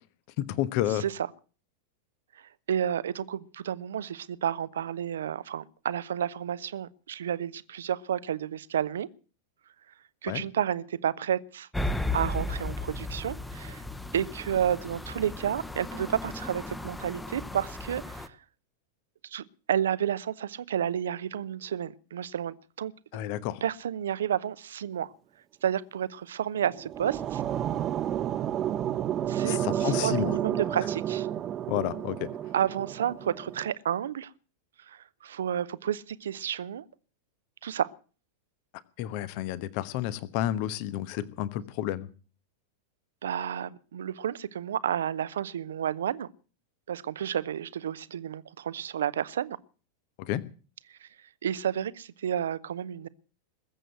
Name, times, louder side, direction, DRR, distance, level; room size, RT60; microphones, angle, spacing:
voice 1, 0.4-1.0 10.3-10.4 23.1-23.6 29.4-30.4 31.7-32.3 39.0-42.1 50.2-50.4, left 13 dB, 45° left, 1.1 m, -30 dB
voice 2, 0.9-1.3 2.4-9.1 10.2-11.7 12.1-13.8 14.1-18.4 19.3-22.9 23.6-25.1 25.6-27.4 29.3-31.3 32.5-34.3 34.9-36.8 37.6-37.9 43.2-46.3 46.9-49.6 51.0-51.1 51.4-53.1, right 9 dB, 65° right, 0.7 m, -31 dB
sound 1, 11.7-18.3, left 2 dB, 5° left, 1.1 m, -35 dB
sound 2, 26.5-33.7, right 11 dB, 30° right, 0.8 m, -31 dB
21.0 x 7.8 x 7.9 m
figure-of-eight pair, 90°, 0 cm